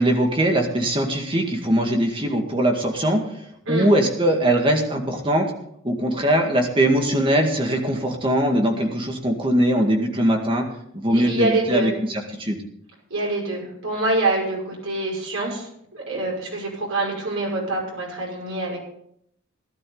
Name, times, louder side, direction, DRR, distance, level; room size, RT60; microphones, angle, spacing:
voice 1, 0.0-3.2 3.7-5.5 5.8-10.7 10.9-12.6, right 1 dB, 25° right, 2 dB, 2.0 m, -21 dB
voice 2, 11.1-12.0 13.1-18.8, right 2 dB, 90° right, -2 dB, 5.9 m, -25 dB
17.0 x 12.0 x 4.0 m, 0.72 s
head